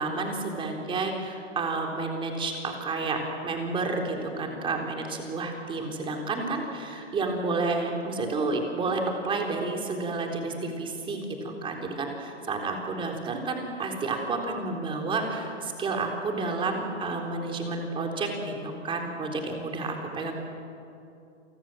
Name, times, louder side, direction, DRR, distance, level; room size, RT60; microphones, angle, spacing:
voice 1, 0.0-20.3, right 3 dB, 15° right, 2 dB, 3.7 m, -30 dB
29.5 x 24.0 x 7.7 m, 2.7 s
hypercardioid pair, 145°, 37 cm